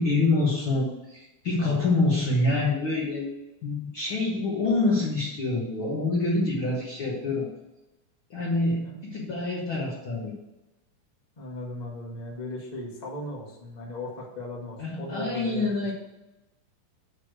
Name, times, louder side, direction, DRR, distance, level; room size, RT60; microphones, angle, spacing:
voice 1, 0.0-3.3 3.6-7.5 8.3-10.3 14.8-15.9, left 2 dB, 60° left, -5 dB, 1.3 m, -26 dB
voice 2, 8.8-9.3 11.4-15.7, left 1 dB, 30° left, -4 dB, 0.7 m, -37 dB
8.3 x 3.2 x 6.3 m, 0.98 s
omnidirectional pair, 4.1 m